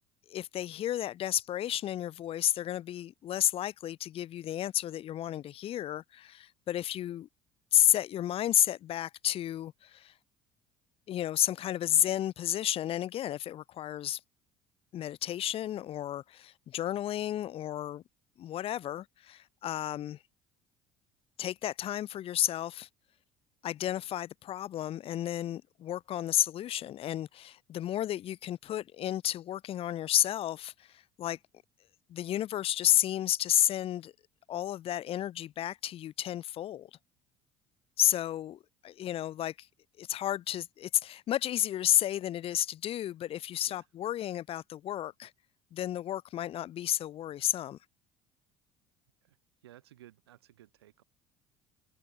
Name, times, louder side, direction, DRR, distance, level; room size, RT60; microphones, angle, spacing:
voice 1, 0.3-7.3 7.7-10.1 11.1-14.2 14.9-18.0 18.4-20.2 21.4-22.9 23.6-31.4 32.1-34.1 34.5-36.9 38.0-39.7 40.0-45.3 45.7-47.8, left 12 dB, 45° left, 0.7 m, -31 dB
voice 2, 49.6-51.0, right 13 dB, 85° right, 2.5 m, -56 dB
hypercardioid pair, 60°, 13 cm